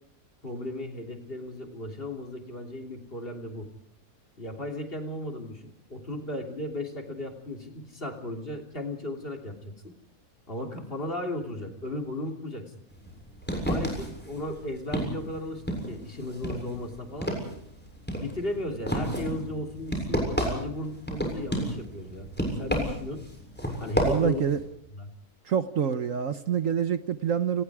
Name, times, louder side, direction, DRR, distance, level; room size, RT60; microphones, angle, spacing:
voice 1, 0.4-3.7 4.4-9.9 10.5-12.7 13.6-17.3 18.2-22.3 22.6-23.2 23.8-24.4 24.9-25.1, left 1 dB, 35° left, 4 dB, 3.2 m, -35 dB
sound 1, 12.9-24.6, equal, 5° left, 7.1 m, -32 dB
voice 2, 24.0-24.6 25.5-27.6, right 8 dB, 60° right, 11 dB, 1.3 m, -26 dB
29.5 x 20.0 x 4.9 m, 0.71 s
omnidirectional pair, 1.7 m